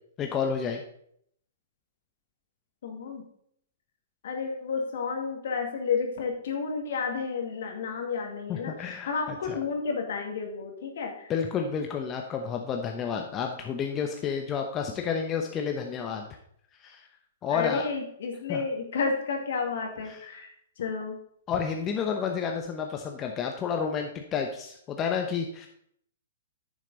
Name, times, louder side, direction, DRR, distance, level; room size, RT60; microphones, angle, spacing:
voice 1, 0.2-0.8 8.5-9.1 9.5-9.6 11.3-16.3 16.8-17.0 17.4-17.9 18.5-18.6 20.1-20.2 21.5-25.7, left 6 dB, 25° left, 3 dB, 0.9 m, -30 dB
voice 2, 2.8-3.2 4.2-11.3 17.5-21.2, left 5 dB, 60° left, 2 dB, 2.2 m, -31 dB
10.0 x 6.4 x 4.0 m, 0.69 s
hypercardioid pair, 120°, 0 cm